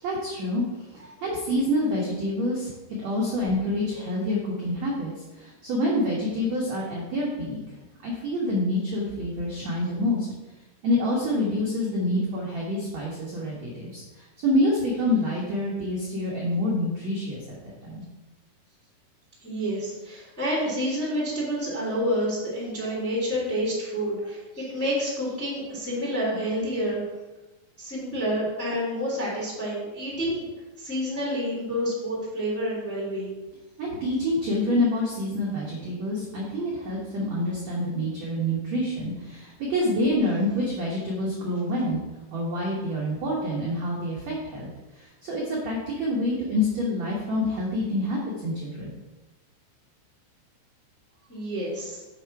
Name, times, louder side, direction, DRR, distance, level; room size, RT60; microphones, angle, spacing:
voice 1, 0.0-7.8 8.0-10.3 10.8-17.6 17.8-18.0 33.8-42.0 42.3-44.7 44.9-48.9, left 1 dB, 75° right, -4 dB, 1.6 m, -27 dB
voice 2, 19.4-27.0 27.8-30.4 30.8-33.4 51.3-52.0, equal, 5° left, -7 dB, 1.6 m, -29 dB
7.4 x 5.6 x 4.7 m, 1.1 s
omnidirectional pair, 5.3 m